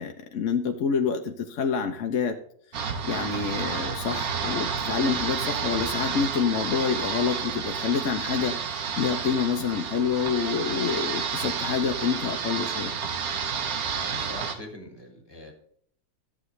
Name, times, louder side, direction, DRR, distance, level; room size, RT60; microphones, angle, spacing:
voice 1, 0.0-2.3 3.0-12.9, left 6 dB, 55° left, 4 dB, 1.0 m, -27 dB
sound 1, 2.7-14.6, right 6 dB, 65° right, 1.3 m, -30 dB
voice 2, 13.9-15.5, left 1 dB, 15° left, 1 dB, 1.8 m, -42 dB
13.5 x 8.2 x 3.2 m, 0.64 s
omnidirectional pair, 1.8 m